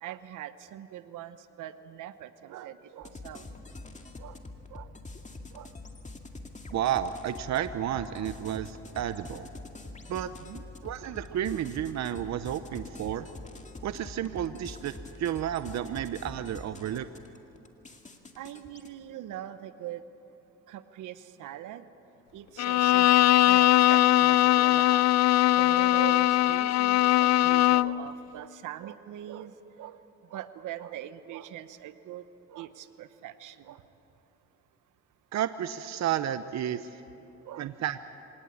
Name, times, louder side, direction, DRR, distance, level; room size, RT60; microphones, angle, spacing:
voice 1, 0.0-3.4 4.2-4.4 4.7-4.9 5.5-5.7 10.2-10.6 18.4-20.0 20.7-21.9 22.3-25.1 25.6-30.0 30.3-33.8 37.4-37.7, right 12 dB, 85° right, 12 dB, 1.0 m, -42 dB
sound 1, 3.0-18.9, left 2 dB, 25° left, 2.2 m, -45 dB
voice 2, 6.7-9.5 10.1-10.3 10.8-13.3 13.8-14.9 15.2-17.1 35.3-36.9 37.6-38.0, right 10 dB, 65° right, 12 dB, 0.8 m, -31 dB
Bowed string instrument, 22.6-28.0, left 15 dB, 60° left, 0.5 m, -21 dB
26.0 x 18.5 x 8.5 m, 3.0 s
cardioid pair, 90°, 30 cm